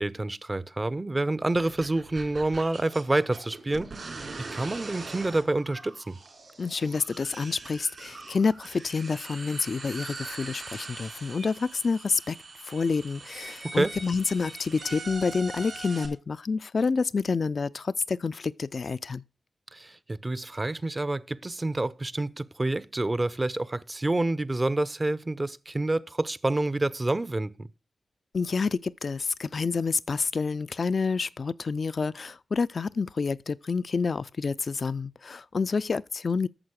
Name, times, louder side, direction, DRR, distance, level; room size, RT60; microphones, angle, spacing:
voice 1, 0.0-3.9 4.4-6.2 13.7-13.9 19.7-27.7, right 2 dB, 30° right, 0.6 m, -28 dB
sound 1, 1.5-16.1, right 3 dB, 65° right, 3.4 m, -42 dB
voice 2, 6.6-12.4 12.6-19.2 28.3-36.5, left 4 dB, 60° left, 0.4 m, -28 dB
8.9 x 6.7 x 6.4 m
cardioid pair, 40°, 0 cm